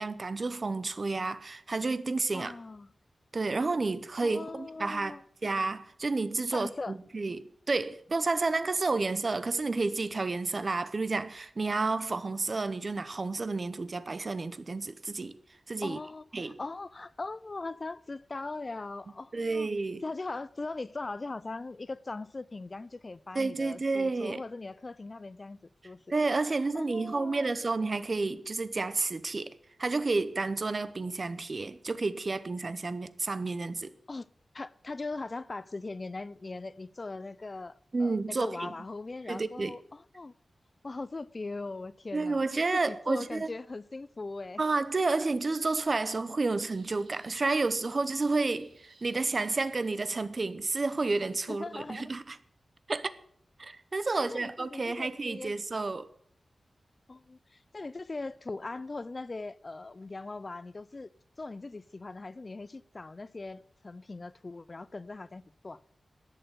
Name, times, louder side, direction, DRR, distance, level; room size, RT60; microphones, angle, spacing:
voice 1, 0.0-2.5 3.3-5.1 5.4-15.4 15.7-16.0 16.3-16.6 19.3-20.0 23.3-24.4 26.1-33.9 37.9-38.7 39.3-39.8 42.1-43.5 44.6-52.4 52.9-53.1 53.6-56.1, right 3 dB, 45° right, 0.8 m, -30 dB
voice 2, 2.3-2.9 4.2-5.2 6.5-7.0 15.8-19.7 20.0-25.6 25.8-26.0 26.7-27.5 34.1-34.3 34.5-40.3 40.8-42.5 42.9-44.6 51.5-52.1 54.2-55.6 57.1-61.1 61.4-65.8, left 3 dB, 35° left, 0.4 m, -40 dB
sound 1, 46.7-50.4, right 3 dB, 60° right, 2.8 m, -62 dB
11.5 x 6.8 x 8.1 m
wide cardioid pair, 100°, 0 cm